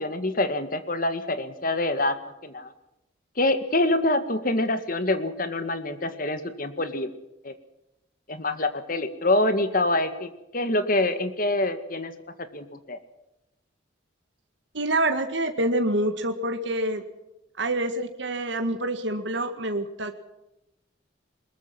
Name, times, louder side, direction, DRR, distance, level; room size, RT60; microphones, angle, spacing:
voice 1, 0.0-2.2 2.4-2.7 3.4-7.1 7.4-7.5 8.3-10.3 10.5-12.1 12.5-13.0, left 2 dB, 45° left, 10 dB, 1.9 m, -25 dB
voice 2, 14.7-17.0 17.6-20.1, right 1 dB, 65° right, 6 dB, 1.8 m, -26 dB
22.0 x 21.0 x 6.0 m, 0.91 s
head